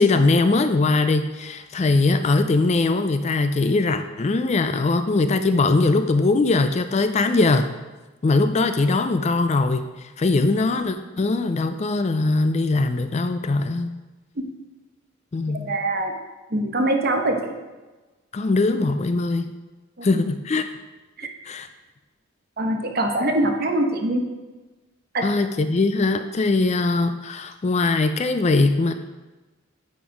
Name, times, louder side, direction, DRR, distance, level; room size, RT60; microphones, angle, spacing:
voice 1, 0.0-7.7 8.2-9.9 10.2-14.0 15.3-15.7 18.3-19.5 20.0-20.6 21.5-21.7 25.2-28.9, left 3 dB, 35° left, 9 dB, 0.4 m, -21 dB
voice 2, 15.5-16.1 16.5-17.5 20.0-20.2 21.2-21.3 22.6-24.2 25.1-25.3, right 1 dB, 50° right, 4 dB, 1.0 m, -23 dB
9.0 x 4.4 x 4.9 m, 1.2 s
head